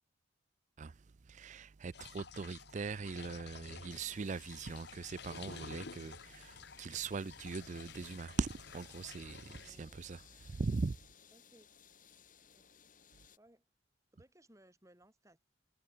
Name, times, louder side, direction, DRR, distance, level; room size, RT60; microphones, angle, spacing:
voice 1, 0.8-11.0, right 4 dB, 40° right, 0.4 m, -40 dB
sound 1, 1.9-9.7, left 5 dB, 60° left, 1.1 m, -52 dB
sound 2, 3.9-13.4, left 8 dB, 45° left, 4.6 m, -61 dB
voice 2, 9.4-10.1 11.3-11.7 12.4-12.8 13.4-13.7 14.1-15.4, right 1 dB, 15° right, 6.0 m, -65 dB
head